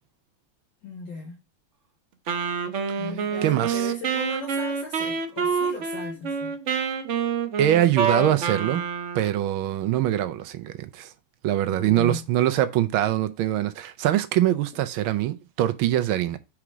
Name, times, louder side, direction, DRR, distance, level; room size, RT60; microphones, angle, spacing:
voice 1, 0.8-1.4 3.0-6.6 11.7-12.2, left 4 dB, 65° left, 1.8 m, -37 dB
Wind instrument woodwind instrument, 2.3-9.4, right 6 dB, 55° right, 0.8 m, -27 dB
voice 2, 3.4-3.9 7.6-8.8 9.1-11.1 11.4-16.4, right 12 dB, 80° right, 1.5 m, -23 dB
5.0 x 4.5 x 6.1 m
omnidirectional pair, 2.2 m